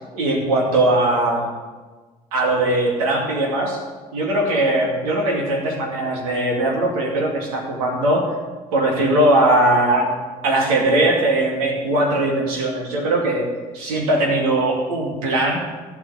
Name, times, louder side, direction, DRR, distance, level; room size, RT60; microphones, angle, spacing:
voice 1, 0.1-1.5 2.3-3.8 4.1-8.3 8.7-10.1 10.4-13.5 13.7-15.6, right 1 dB, 75° right, 0 dB, 2.7 m, -20 dB
14.5 x 6.1 x 10.0 m, 1.3 s
figure-of-eight pair, 50°, 19 cm